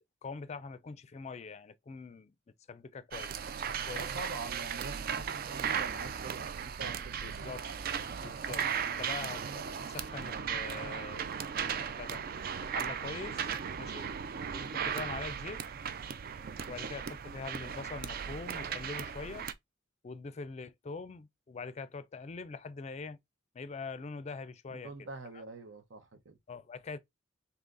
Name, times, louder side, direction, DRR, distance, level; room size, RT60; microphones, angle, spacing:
voice 1, 0.2-2.3 2.7-3.3 3.8-4.0 7.2-7.7 8.2-12.2 12.6-13.5 13.8-14.1 14.5-15.6 16.7-19.5 20.0-23.2 23.5-25.1 26.5-27.0, left 4 dB, 35° left, 0.4 m, -43 dB
sound 1, 3.1-19.5, right 7 dB, 50° right, 0.4 m, -37 dB
voice 2, 3.9-7.9 24.7-26.4, right 3 dB, 80° right, 0.9 m, -45 dB
3.9 x 2.8 x 3.7 m
head